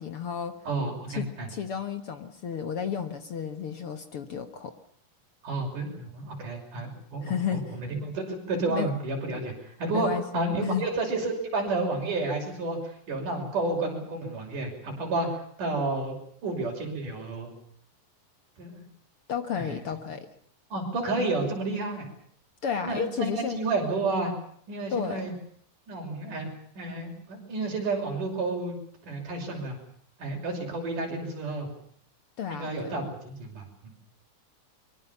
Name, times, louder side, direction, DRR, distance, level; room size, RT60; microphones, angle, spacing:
voice 1, 0.0-0.6 1.1-4.7 7.2-7.8 8.7-8.9 9.9-10.9 19.3-20.3 22.6-23.6 24.9-25.2 32.4-32.9, left 7 dB, 55° left, 9 dB, 1.9 m, -32 dB
voice 2, 0.7-1.5 5.4-16.2 16.4-17.5 18.6-18.8 19.6-19.8 20.7-22.1 22.8-24.3 24.7-25.3 25.9-26.5 26.8-28.8 29.0-29.8 30.2-31.7 32.5-33.6, right 3 dB, 75° right, 2 dB, 7.5 m, -31 dB
23.5 x 23.5 x 7.1 m, 0.64 s
omnidirectional pair, 3.6 m